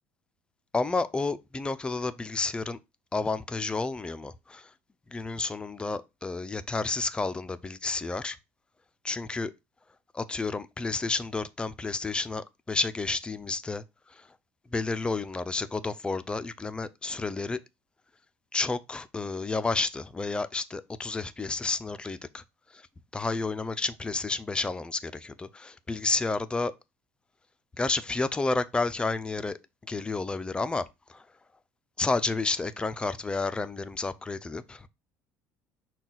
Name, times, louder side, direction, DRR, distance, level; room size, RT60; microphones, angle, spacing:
voice 1, 0.7-2.8 3.1-4.7 5.1-8.4 9.0-9.5 10.1-13.8 14.1-14.3 14.7-17.6 18.5-22.4 22.7-22.8 23.1-26.7 27.8-29.6 29.9-30.8 31.1-31.2 32.0-34.9, left 3 dB, 15° left, 0.4 m, -31 dB
5.9 x 2.3 x 3.9 m
supercardioid pair, 95°, 6 cm